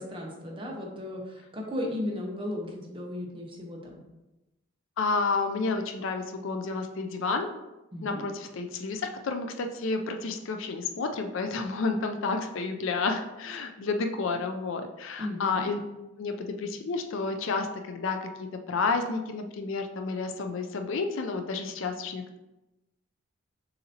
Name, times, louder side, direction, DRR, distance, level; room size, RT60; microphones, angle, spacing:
voice 1, 0.0-4.0 7.9-8.2 15.2-15.6, left 1 dB, 25° right, -1 dB, 0.9 m, -35 dB
voice 2, 5.0-7.5 8.0-15.8 16.2-22.4, left 4 dB, 65° left, 6 dB, 0.4 m, -30 dB
6.5 x 2.8 x 2.8 m, 0.99 s
head